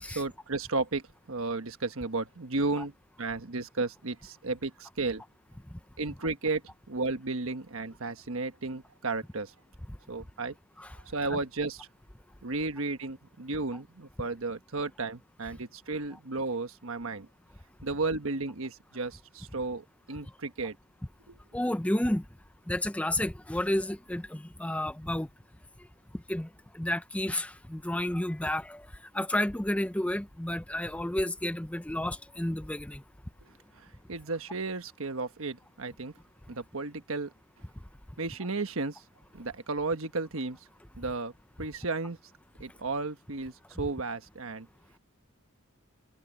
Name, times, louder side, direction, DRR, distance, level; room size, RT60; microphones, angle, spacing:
voice 1, 0.1-2.9 3.2-5.2 6.0-6.6 6.9-9.5 10.1-10.5 11.0-11.9 12.4-17.3 17.8-20.8 21.3-21.4 33.8-36.1 36.5-37.3 38.2-39.0 39.3-40.6 41.0-41.3 41.6-42.2 42.6-44.7, right 3 dB, 65° right, 1.3 m, -33 dB
voice 2, 21.5-22.2 22.7-25.3 26.3-26.5 26.7-28.8 29.1-33.0, left 1 dB, 5° left, 0.6 m, -31 dB
head